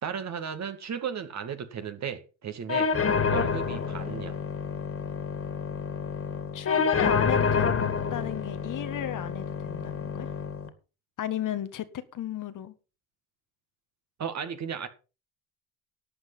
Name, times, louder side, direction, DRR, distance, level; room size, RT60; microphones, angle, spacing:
voice 1, 0.0-2.9 3.3-4.4 14.2-14.9, right 7 dB, 40° right, 2.2 m, -35 dB
sound 1, 2.7-10.7, left 5 dB, 35° left, 2.6 m, -28 dB
voice 2, 6.5-10.3 11.2-11.9 12.1-12.7, left 10 dB, 50° left, 1.6 m, -33 dB
12.5 x 8.0 x 5.7 m
hypercardioid pair, 75°, 41 cm